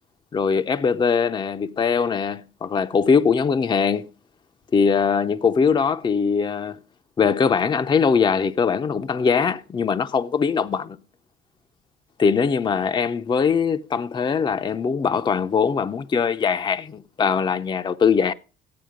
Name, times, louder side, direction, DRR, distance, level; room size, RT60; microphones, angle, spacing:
voice 1, 0.3-4.1 4.7-6.8 7.2-11.0 12.2-18.3, left 6 dB, 30° left, 0.6 m, -21 dB
13.5 x 9.5 x 5.0 m
cardioid pair, 110°, 17 cm